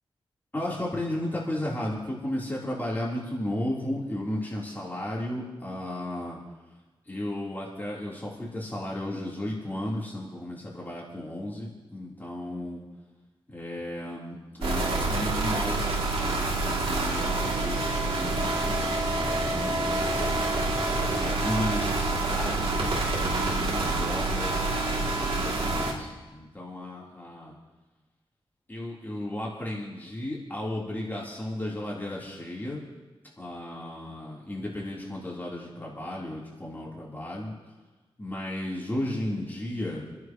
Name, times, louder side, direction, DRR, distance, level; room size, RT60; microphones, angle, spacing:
voice 1, 0.5-6.4 7.1-12.8 13.5-20.4 21.1-24.5 24.8-27.5 28.7-32.8 33.4-37.5 38.2-40.2, left 1 dB, 20° left, -5 dB, 3.9 m, -34 dB
sound 1, 14.6-25.9, right 2 dB, 75° right, 3.0 m, -27 dB
28.5 x 11.0 x 3.2 m, 1.2 s
wide cardioid pair, 85°, 10 cm